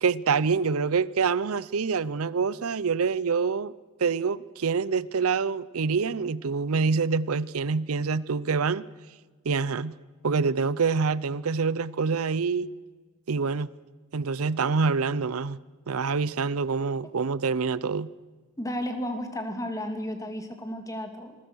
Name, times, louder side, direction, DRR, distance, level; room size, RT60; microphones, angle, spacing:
voice 1, 0.0-3.7 4.0-8.8 9.4-9.9 10.2-12.7 13.3-13.7 14.1-15.6 15.9-18.1, right 5 dB, 80° right, 0.6 m, -26 dB
voice 2, 18.6-21.3, equal, 15° left, 2.7 m, -33 dB
26.0 x 21.0 x 6.3 m
head